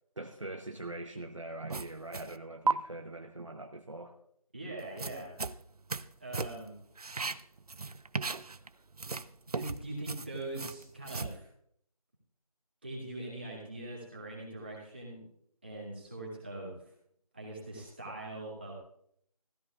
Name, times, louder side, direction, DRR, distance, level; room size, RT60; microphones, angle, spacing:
voice 1, 0.2-4.2, right 2 dB, 50° right, 4 dB, 0.9 m, -42 dB
sound 1, 1.7-2.4 2.7-2.8 4.8-6.1 6.3-6.7 7.0-8.7 8.9-11.4, right 4 dB, 70° right, 0.6 m, -35 dB
voice 2, 4.5-5.3 6.2-6.8 9.5-11.5 12.8-15.2 15.6-16.7 17.3-18.7, right 2 dB, 15° right, -4 dB, 2.1 m, -42 dB
15.5 x 13.5 x 2.4 m, 0.69 s
figure-of-eight pair, 175°, 20 cm